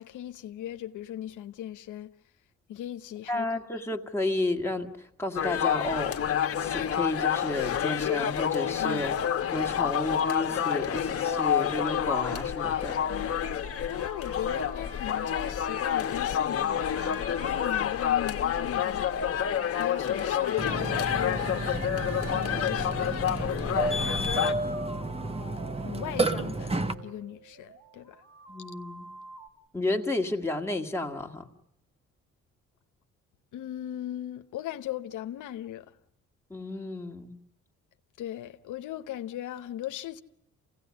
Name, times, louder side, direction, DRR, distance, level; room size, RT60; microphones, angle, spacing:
voice 1, 0.0-2.1 2.7-3.5 8.8-9.0 13.1-13.4 13.9-19.1 19.8-21.7 22.3-23.3 23.9-24.4 25.8-28.2 33.5-36.0 38.2-40.2, left 12 dB, 80° left, 0.9 m, -38 dB
voice 2, 3.3-4.9 5.2-6.2 6.6-9.2 9.5-13.0 28.5-29.1 29.7-31.5 36.5-37.4, left 2 dB, 10° left, 1.9 m, -31 dB
sound 1, 5.4-24.5, left 9 dB, 50° left, 1.2 m, -28 dB
sound 2, 12.3-29.5, right 4 dB, 35° right, 3.1 m, -49 dB
Burping eructation, 20.6-26.9, right 2 dB, 20° right, 1.2 m, -31 dB
27.5 x 17.0 x 9.6 m
cardioid pair, 90°, 30 cm